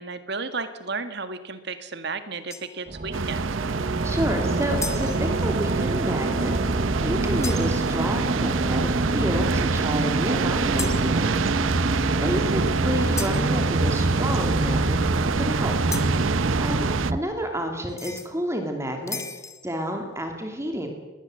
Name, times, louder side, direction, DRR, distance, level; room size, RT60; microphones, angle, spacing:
voice 1, 0.0-3.5 16.6-16.8, right 4 dB, 55° right, 10 dB, 1.8 m, -33 dB
sound 1, 2.5-2.9 4.8-5.5 7.4-8.0 10.8-11.5 13.2-13.6 15.9-16.3 17.9-18.3 19.1-19.7, left 5 dB, 15° left, 1.1 m, -36 dB
sound 2, 2.9-17.2, right 2 dB, 40° right, 0.9 m, -26 dB
sound 3, 3.1-17.1, right 5 dB, 80° right, 0.7 m, -28 dB
voice 2, 4.0-6.5 7.0-11.4 12.2-15.0 15.4-15.7 16.6-16.9 17.1-19.2 19.6-20.9, equal, 15° right, 4 dB, 2.7 m, -29 dB
20.5 x 19.5 x 7.7 m, 1.2 s
head